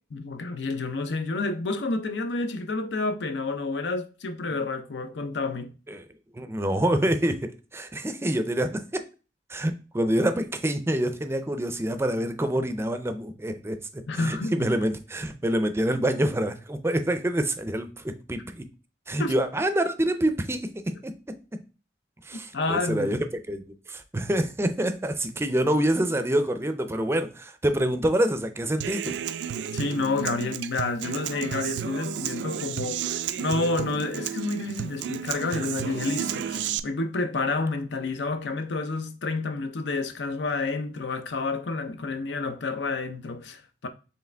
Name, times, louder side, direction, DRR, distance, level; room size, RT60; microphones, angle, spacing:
voice 1, 0.1-5.7 14.1-14.7 19.2-19.3 22.3-23.2 29.7-33.1 33.4-43.9, left 3 dB, 85° left, 0.6 m, -29 dB
voice 2, 6.3-9.0 9.5-18.6 19.1-20.7 21.0-21.1 22.2-23.2 23.5-29.2, right 1 dB, 15° right, 0.4 m, -26 dB
Human voice / Acoustic guitar, 28.8-36.8, right 9 dB, 80° right, 0.3 m, -32 dB
4.7 x 3.2 x 3.4 m
head